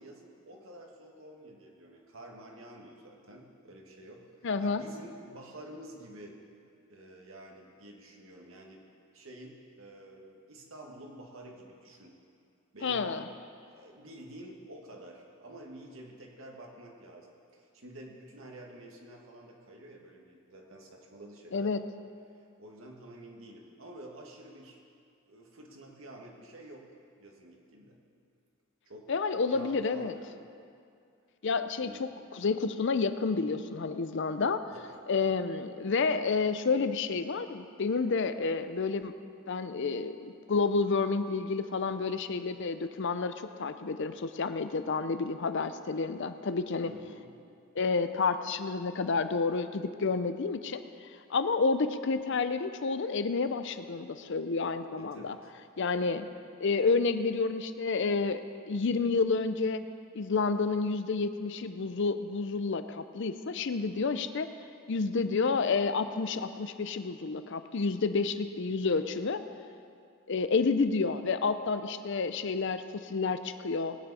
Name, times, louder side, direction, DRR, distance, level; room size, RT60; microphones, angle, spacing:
voice 1, 0.0-4.3 4.6-6.4 6.9-8.8 9.1-12.1 12.7-13.0 13.7-21.7 22.6-24.8 25.3-26.9 27.2-28.0 28.8-30.4 31.7-32.1 34.7-35.0 46.9-47.3 55.0-55.5 56.0-56.2, right 1 dB, 70° right, 0 dB, 1.9 m, -49 dB
voice 2, 4.4-4.8 12.8-13.3 21.5-21.8 29.1-30.1 31.4-34.6 35.1-39.1 39.5-46.9 47.8-50.8 51.3-55.4 55.8-56.3 56.6-59.8 60.1-64.5 64.9-69.4 70.3-74.0, left 4 dB, 60° left, 11 dB, 0.5 m, -30 dB
19.5 x 9.5 x 4.2 m, 2.4 s
head